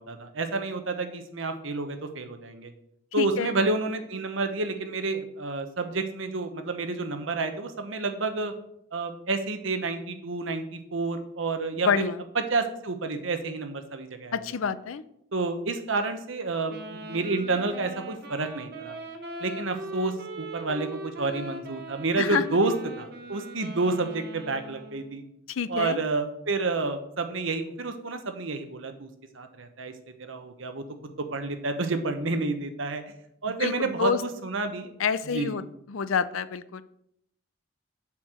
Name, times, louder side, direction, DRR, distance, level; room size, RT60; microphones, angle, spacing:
voice 1, 0.0-2.7 3.1-8.5 8.9-12.1 12.3-14.4 15.3-19.0 19.4-25.2 25.7-29.1 29.3-29.9 30.2-30.8 31.3-33.0 33.4-34.9 35.2-35.5, right 3 dB, 75° right, 7 dB, 1.0 m, -29 dB
voice 2, 3.2-3.5 11.8-12.2 14.3-15.0 22.2-22.6 25.5-26.0 33.6-34.2 35.0-35.6 35.9-36.8, left 6 dB, 85° left, 15 dB, 0.5 m, -27 dB
Wind instrument woodwind instrument, 16.7-25.2, right 1 dB, 50° right, 1.3 m, -40 dB
7.2 x 4.7 x 6.5 m, 0.74 s
head